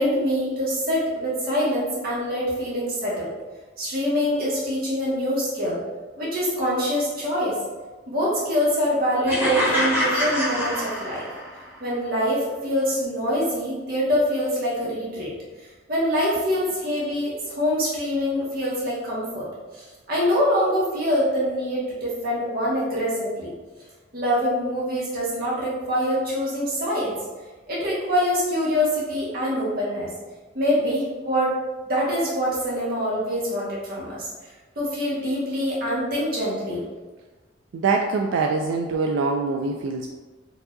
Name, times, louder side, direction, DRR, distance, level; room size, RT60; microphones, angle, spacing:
voice 1, 0.0-3.3 3.8-5.8 6.2-7.6 8.1-11.2 11.8-15.3 15.9-19.5 19.8-23.5 24.1-27.1 27.7-30.1 30.5-31.5 31.9-34.3 34.7-36.8, equal, 50° right, -7 dB, 1.3 m, -24 dB
sound 1, 9.3-11.6, equal, 10° right, 1.3 m, -25 dB
voice 2, 37.7-40.1, right 4 dB, 90° right, 2 dB, 0.3 m, -24 dB
4.6 x 2.7 x 2.5 m, 1.3 s
head